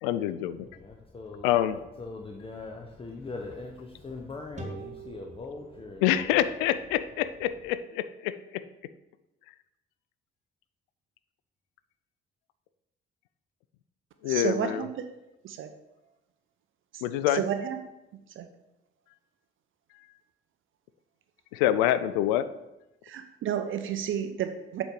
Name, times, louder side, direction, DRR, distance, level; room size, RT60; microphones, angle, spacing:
voice 1, 0.0-0.7 1.4-1.8 6.0-8.6 14.2-14.9 17.0-17.4 21.5-22.5, left 12 dB, 65° left, 14 dB, 0.4 m, -26 dB
voice 2, 0.7-6.3, left 3 dB, 20° left, 1 dB, 0.7 m, -41 dB
sound 1, 4.6-7.9, right 3 dB, 25° right, 1.3 m, -46 dB
voice 3, 14.2-15.1 15.4-15.7 17.3-17.8 18.4-18.5 23.0-24.8, right 9 dB, 45° right, 9 dB, 0.6 m, -31 dB
7.8 x 3.1 x 5.3 m, 0.95 s
figure-of-eight pair, 45°, 29 cm